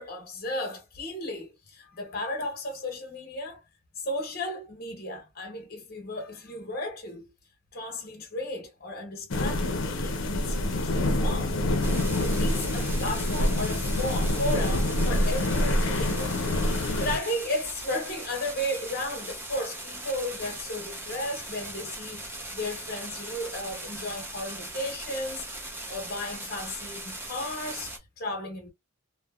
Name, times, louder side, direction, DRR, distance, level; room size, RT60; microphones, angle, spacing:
voice 1, 0.0-3.6 4.0-7.3 7.7-16.4 17.0-28.7, left 1 dB, 45° left, 1.0 m, -34 dB
sound 1, 9.3-17.2, left 1 dB, 70° left, 0.6 m, -26 dB
sound 2, 11.8-28.0, right 1 dB, 10° right, 0.6 m, -39 dB
3.0 x 2.0 x 2.3 m
head